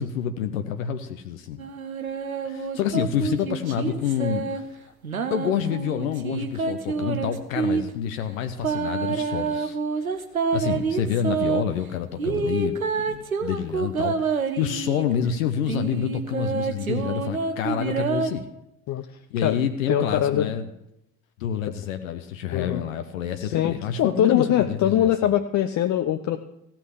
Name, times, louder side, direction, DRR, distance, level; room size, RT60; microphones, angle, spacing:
voice 1, 0.0-1.6 2.4-4.7 5.3-9.8 10.5-18.5 19.3-20.7 21.4-25.1, left 8 dB, 70° left, 7 dB, 0.9 m, -28 dB
sound 1, 1.6-4.6 5.0-7.8 8.6-11.6 12.2-15.1 15.7-18.3, right 5 dB, 90° right, 0.8 m, -27 dB
voice 2, 19.9-20.5 22.5-22.8 23.4-26.4, left 10 dB, 45° left, 8 dB, 0.8 m, -23 dB
15.5 x 5.9 x 9.8 m, 0.86 s
figure-of-eight pair, 55°, 41 cm